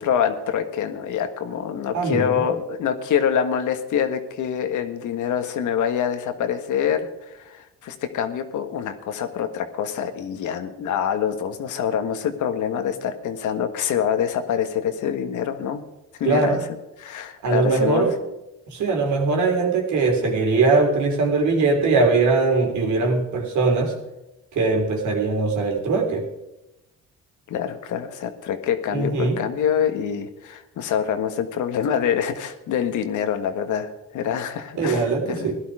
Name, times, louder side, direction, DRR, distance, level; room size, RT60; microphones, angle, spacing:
voice 1, 0.0-15.8 16.2-16.6 17.0-18.1 27.5-35.6, left 8 dB, 80° left, 8 dB, 1.6 m, -25 dB
voice 2, 1.9-2.5 16.2-16.6 17.4-18.2 18.7-24.0 24.5-26.3 28.9-29.4 34.7-35.6, right 3 dB, 70° right, 2 dB, 3.5 m, -21 dB
16.5 x 11.5 x 4.9 m, 0.95 s
cardioid pair, 90°, 30 cm